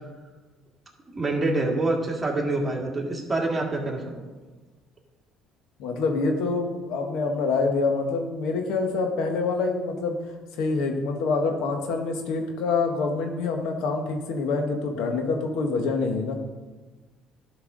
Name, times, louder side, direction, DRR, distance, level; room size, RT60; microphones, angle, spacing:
voice 1, 1.1-4.3, right 2 dB, 20° right, -2 dB, 2.1 m, -26 dB
voice 2, 5.8-10.2 10.6-16.3, left 4 dB, 80° left, 4 dB, 1.3 m, -26 dB
11.5 x 5.5 x 3.9 m, 1.3 s
supercardioid pair, 90°, 0 cm